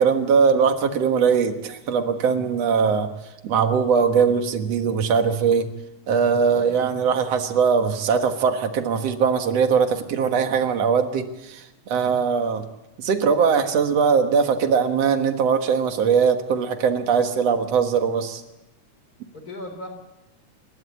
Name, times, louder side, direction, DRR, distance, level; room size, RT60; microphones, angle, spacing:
voice 1, 0.0-3.1 3.4-5.7 6.1-12.7 13.0-18.4, right 6 dB, 60° right, 7 dB, 2.4 m, -21 dB
voice 2, 6.4-6.8 19.3-19.9, left 1 dB, 30° left, 5 dB, 3.9 m, -37 dB
29.0 x 12.5 x 8.6 m, 0.95 s
omnidirectional pair, 3.6 m